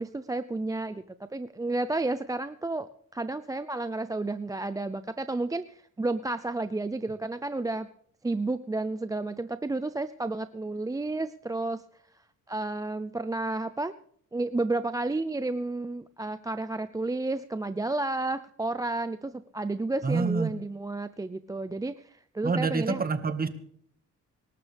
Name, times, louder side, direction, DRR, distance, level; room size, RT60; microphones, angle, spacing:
voice 1, 0.0-7.9 8.2-11.8 12.5-13.9 14.3-23.0, right 2 dB, 10° right, 12 dB, 0.5 m, -31 dB
voice 2, 20.0-20.6 22.4-23.5, right 4 dB, 30° right, 9 dB, 1.7 m, -27 dB
26.0 x 12.5 x 3.4 m, 0.62 s
cardioid pair, 90°, 30 cm